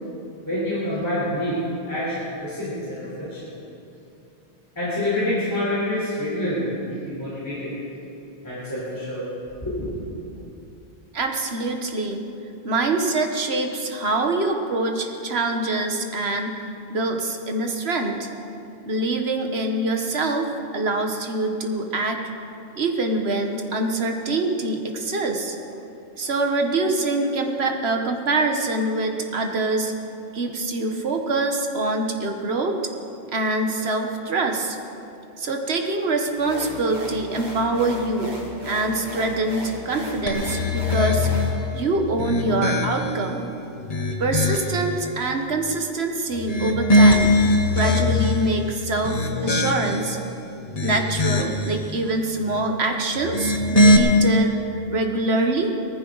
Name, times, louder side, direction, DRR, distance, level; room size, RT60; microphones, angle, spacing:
voice 1, 0.4-1.6 1.9-3.4 4.8-7.7 8.4-9.2 9.6-9.9, left 1 dB, 15° left, -10 dB, 3.9 m, -27 dB
voice 2, 11.1-12.3 12.6-16.6 16.9-18.3 18.8-22.2 22.7-25.6 26.2-29.9 30.3-32.8 33.3-34.8 35.4-38.4 38.6-41.3 41.7-43.5 44.2-47.4 47.7-50.2 50.8-54.5 54.9-55.7, right 2 dB, 65° right, 4 dB, 1.5 m, -24 dB
sound 1, 36.4-41.5, left 1 dB, 40° right, 2.1 m, -36 dB
sound 2, 40.3-41.6 42.1-43.2 43.7-44.8 46.3-48.5 49.0-50.1 50.6-51.7 53.2-54.0, left 1 dB, 35° left, 1.1 m, -20 dB
19.0 x 14.5 x 4.0 m, 2.8 s
omnidirectional pair, 1.1 m